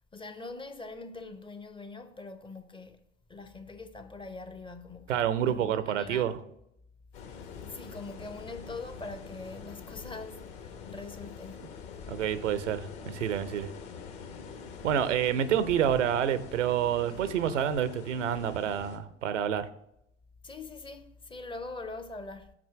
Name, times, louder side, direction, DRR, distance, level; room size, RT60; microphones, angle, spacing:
voice 1, 0.1-3.0 3.3-6.3 7.6-11.8 17.1-17.4 20.4-22.5, left 3 dB, 15° left, 0.5 m, -43 dB
voice 2, 5.1-6.3 12.1-13.7 14.8-19.7, right 9 dB, 80° right, 0.6 m, -28 dB
sound 1, 7.1-19.0, left 6 dB, 60° left, 1.3 m, -45 dB
6.0 x 4.4 x 5.6 m
figure-of-eight pair, 75°, 36 cm